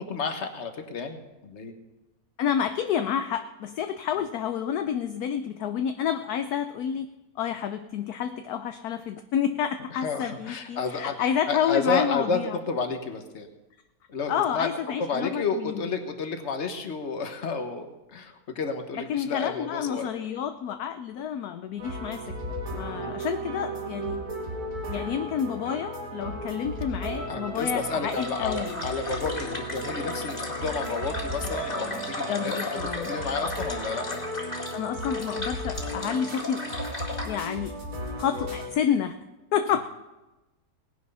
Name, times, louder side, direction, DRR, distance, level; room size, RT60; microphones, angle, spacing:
voice 1, 0.0-1.7 9.9-11.1 11.5-13.5 14.1-20.1 22.9-23.1 27.3-34.2, left 4 dB, 45° left, 6 dB, 1.4 m, -31 dB
voice 2, 2.4-7.1 7.4-12.6 14.3-15.9 19.0-22.4 22.7-24.2 24.9-28.8 32.3-33.1 34.7-36.7 37.2-37.7 38.2-39.1 39.5-39.8, left 8 dB, 70° left, 8 dB, 1.1 m, -29 dB
sound 1, 21.8-38.7, equal, 60° right, 3.5 m, -35 dB
sound 2, 28.1-37.4, left 2 dB, 25° left, 2.4 m, -36 dB
18.5 x 9.7 x 5.5 m, 1.1 s
omnidirectional pair, 1.8 m